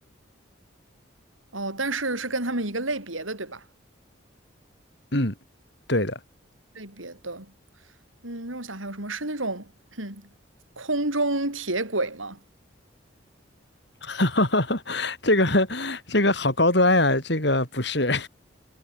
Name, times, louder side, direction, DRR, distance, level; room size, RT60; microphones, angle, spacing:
voice 1, 1.5-3.6 6.7-7.5 8.2-10.3 10.8-12.4, right 2 dB, 85° right, 7.8 m, -30 dB
voice 2, 5.9-6.2 14.0-18.3, left 2 dB, 60° left, 5.7 m, -22 dB
head